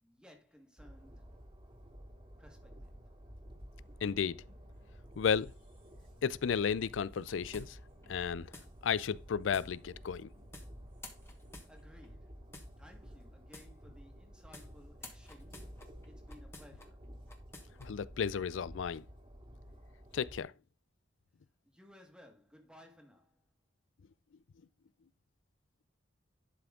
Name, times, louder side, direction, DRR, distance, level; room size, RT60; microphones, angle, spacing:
voice 1, 0.0-1.2 2.4-2.9 11.7-12.4 12.8-15.8 16.1-17.1 21.6-23.5, left 1 dB, 5° right, 1.8 m, -59 dB
Train, 0.8-20.4, equal, 30° right, 2.1 m, -53 dB
sound 1, 3.8-11.8, right 1 dB, 90° right, 2.5 m, -65 dB
voice 2, 4.0-4.4 5.2-5.5 6.2-7.8 8.1-8.5 8.8-10.3 17.8-19.0 20.1-20.5, left 7 dB, 85° left, 0.4 m, -33 dB
sound 2, 7.1-8.1 8.5-8.7 9.5-9.7 10.5-10.7 11.0-12.1 12.5-12.7 13.5-13.7 14.5-14.7 15.0-16.9 17.3-17.9, left 2 dB, 15° left, 1.4 m, -51 dB
11.0 x 5.9 x 3.7 m
head